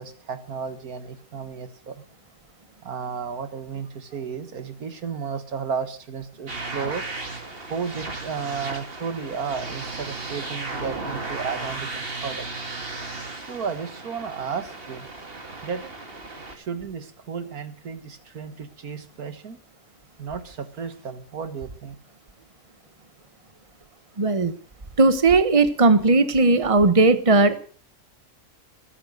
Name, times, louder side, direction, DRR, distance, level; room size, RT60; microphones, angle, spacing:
voice 1, 0.0-2.0 2.8-7.0 7.7-12.6 13.5-15.1 15.6-15.8 16.5-19.6 20.2-22.0, right 6 dB, 90° right, 10 dB, 2.1 m, -33 dB
sound 1, 6.5-16.6, right 3 dB, 40° right, 2.6 m, -35 dB
voice 2, 24.2-24.5 25.0-27.6, right 3 dB, 25° right, 11 dB, 1.3 m, -17 dB
22.0 x 10.0 x 6.5 m, 0.42 s
omnidirectional pair, 1.5 m